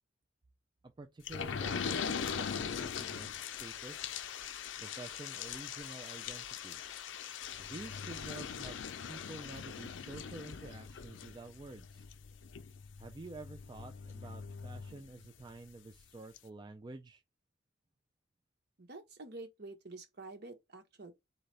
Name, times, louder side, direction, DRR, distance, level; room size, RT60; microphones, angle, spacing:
voice 1, 1.0-4.1 4.8-6.8 7.6-8.8 9.1-12.1 13.0-17.2, right 2 dB, 25° right, 0.3 m, -49 dB
sound 1, 1.3-15.6 16.0-16.1 16.4-16.5, left 7 dB, 75° left, 0.5 m, -41 dB
voice 2, 18.8-21.1, right 2 dB, 60° right, 1.2 m, -48 dB
4.0 x 4.0 x 3.3 m
head